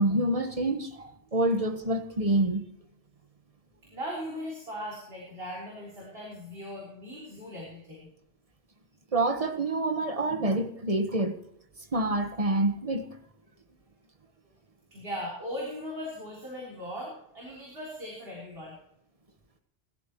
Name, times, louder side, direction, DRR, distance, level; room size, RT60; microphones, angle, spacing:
voice 1, 0.0-2.6 9.1-11.4 11.9-13.1, right 2 dB, 35° right, 1.4 m, -27 dB
voice 2, 3.9-8.1 14.9-18.8, equal, 65° right, 4.1 m, -39 dB
20.5 x 13.0 x 3.0 m
omnidirectional pair, 1.1 m